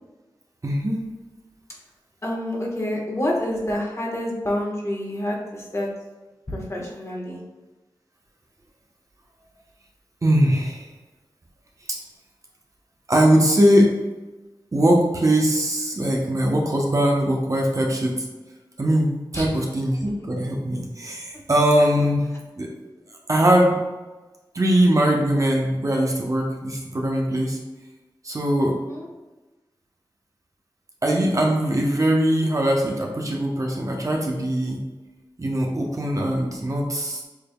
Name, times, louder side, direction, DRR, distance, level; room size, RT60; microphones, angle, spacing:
voice 1, 0.6-1.0 10.2-10.9 13.1-14.0 14.7-18.2 18.8-22.3 22.6-22.7 23.3-23.8 24.5-27.6 28.2-28.8 31.0-34.8 35.4-37.2, right 1 dB, 40° right, -1 dB, 0.9 m, -21 dB
voice 2, 2.2-5.9 6.5-7.4 19.3-19.5 28.7-29.1, left 1 dB, 35° left, -3 dB, 1.4 m, -28 dB
6.6 x 3.4 x 2.3 m, 1.2 s
cardioid pair, 45°, 8 cm